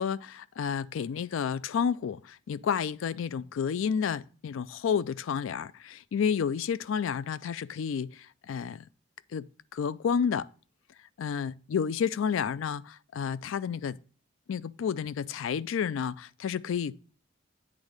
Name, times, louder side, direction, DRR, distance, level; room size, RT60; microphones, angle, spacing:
voice 1, 0.0-8.8 9.3-10.5 11.2-14.0 14.5-17.0, left 7 dB, 75° left, 0.3 m, -31 dB
8.5 x 3.5 x 6.4 m
head